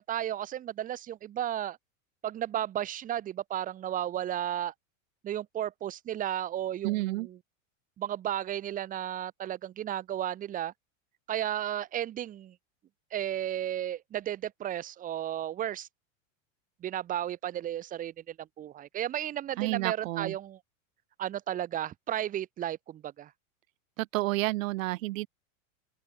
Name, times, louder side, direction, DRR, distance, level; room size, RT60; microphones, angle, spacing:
voice 1, 0.0-1.8 2.2-4.7 5.2-7.4 8.0-10.7 11.3-12.5 13.1-15.9 16.8-20.6 21.2-23.3, right 11 dB, 20° right, 1.0 m, -34 dB
voice 2, 6.8-7.3 19.6-20.3 24.0-25.3, right 19 dB, 70° right, 1.0 m, -30 dB
open air
supercardioid pair, 155°, 41 cm